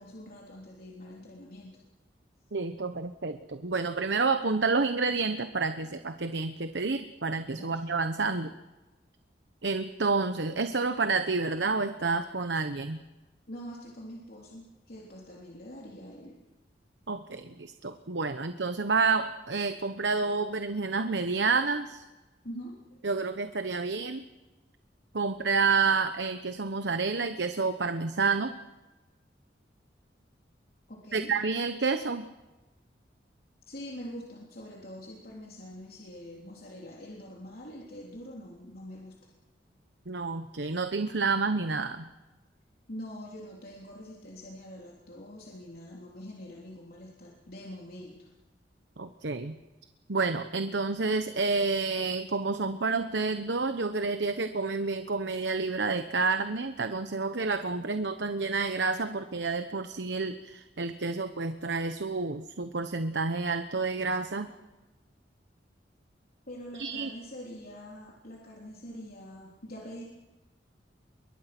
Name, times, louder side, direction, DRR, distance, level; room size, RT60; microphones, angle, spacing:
voice 1, 0.0-1.8 7.5-7.8 13.5-16.4 22.4-22.8 30.9-31.3 33.7-39.3 42.9-48.3 66.5-70.0, equal, 55° left, -2 dB, 3.5 m, -44 dB
voice 2, 2.5-8.5 9.6-13.0 17.1-22.0 23.0-24.3 25.1-28.5 31.1-32.3 40.1-42.1 49.0-49.6 50.1-64.5 66.7-67.1, right 4 dB, 80° right, 9 dB, 1.1 m, -29 dB
27.5 x 23.0 x 6.1 m, 1.1 s
head